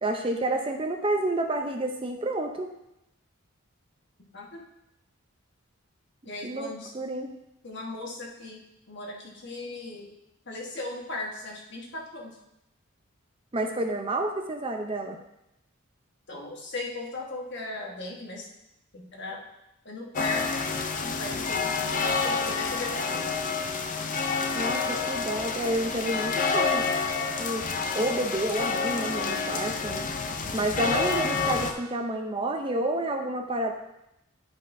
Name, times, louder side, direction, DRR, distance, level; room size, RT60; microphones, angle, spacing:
voice 1, 0.0-2.7 6.4-7.3 13.5-15.2 24.5-26.8 27.4-27.6 27.9-30.1 30.5-33.7, right 1 dB, 25° right, 4 dB, 0.5 m, -29 dB
voice 2, 4.2-4.6 6.2-6.9 7.6-10.1 10.4-12.4 16.3-18.5 18.9-19.4 19.8-20.7 21.0-23.3, left 2 dB, 55° left, -1 dB, 1.4 m, -37 dB
sound 1, 20.1-31.7, left 4 dB, 35° left, 0.5 m, -28 dB
11.0 x 5.3 x 2.6 m, 0.86 s
head